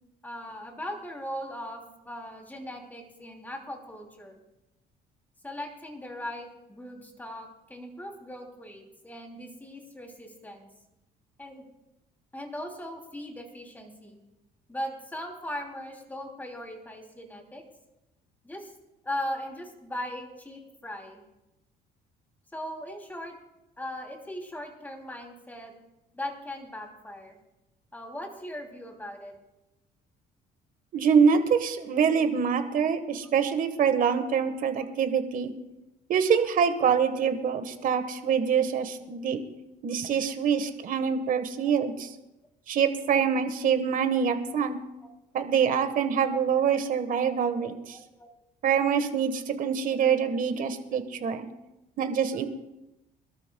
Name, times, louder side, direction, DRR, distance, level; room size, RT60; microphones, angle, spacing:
voice 1, 0.2-4.4 5.4-10.7 11.4-11.6 12.3-14.2 14.7-17.6 18.4-18.7 19.0-21.2 22.5-23.4 23.8-25.7 26.1-27.4 27.9-29.3 41.8-41.9 47.9-48.3, left 1 dB, 10° left, 2 dB, 2.9 m, -39 dB
voice 2, 30.9-35.5 36.1-39.4 39.8-42.1 42.7-44.8 45.3-48.0 48.6-51.5 52.0-52.5, right 7 dB, 55° right, 8 dB, 1.4 m, -25 dB
25.5 x 13.0 x 2.3 m, 0.94 s
cardioid pair, 110°, 17 cm